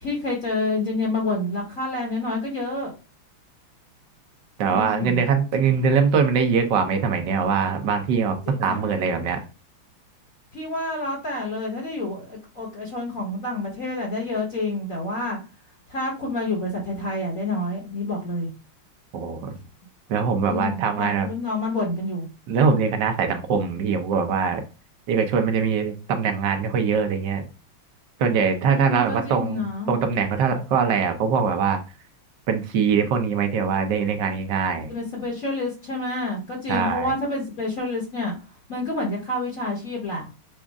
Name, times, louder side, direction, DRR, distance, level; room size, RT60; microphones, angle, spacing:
voice 1, 0.0-2.9 4.7-5.3 8.5-8.8 10.5-15.4 15.9-18.5 20.5-22.3 28.6-29.9 34.9-38.3 38.7-40.3, left 2 dB, 40° left, -3 dB, 1.6 m, -28 dB
voice 2, 4.6-9.4 19.1-19.5 20.1-21.3 22.5-24.6 25.1-27.4 28.2-31.8 32.5-34.9 36.7-37.1, right 6 dB, 65° right, 6 dB, 1.2 m, -22 dB
6.2 x 2.4 x 3.5 m, 0.32 s
omnidirectional pair, 2.4 m